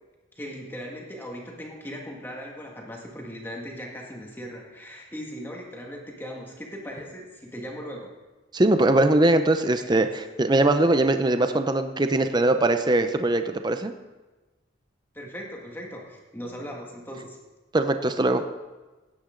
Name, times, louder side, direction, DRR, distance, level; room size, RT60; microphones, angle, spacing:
voice 1, 0.4-8.2 9.9-10.0 15.1-17.4, equal, 10° left, -1 dB, 1.9 m, -38 dB
voice 2, 8.5-13.9 17.7-18.4, right 2 dB, 20° right, 8 dB, 0.6 m, -21 dB
16.5 x 9.6 x 3.8 m, 1.2 s
head